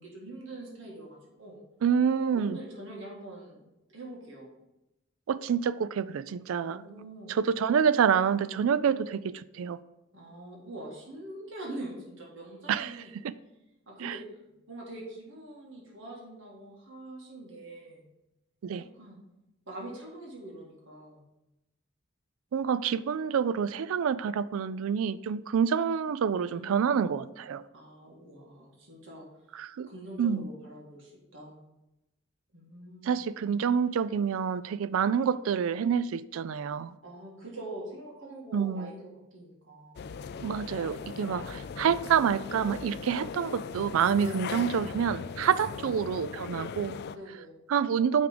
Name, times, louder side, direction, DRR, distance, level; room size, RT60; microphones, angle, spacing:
voice 1, 0.0-1.6 2.3-3.6 3.9-4.5 6.6-7.3 10.1-13.1 13.9-14.2 14.7-18.0 18.8-19.2 19.7-21.2 26.4-27.1 27.7-29.3 29.5-31.6 32.5-33.2 37.0-40.0 44.2-44.6 45.5-45.8 47.1-47.6, right 1 dB, 65° right, 1.8 m, -44 dB
voice 2, 1.8-2.6 5.3-6.8 7.3-9.8 12.7-13.0 13.2-13.3 14.0-14.1 18.6-18.8 22.5-27.6 29.5-29.9 30.2-30.5 33.0-37.0 38.5-38.9 40.4-47.0 47.7-48.3, right 7 dB, 85° right, 0.3 m, -27 dB
sound 1, 40.0-47.2, left 6 dB, 50° left, 0.3 m, -39 dB
9.3 x 3.6 x 5.0 m
head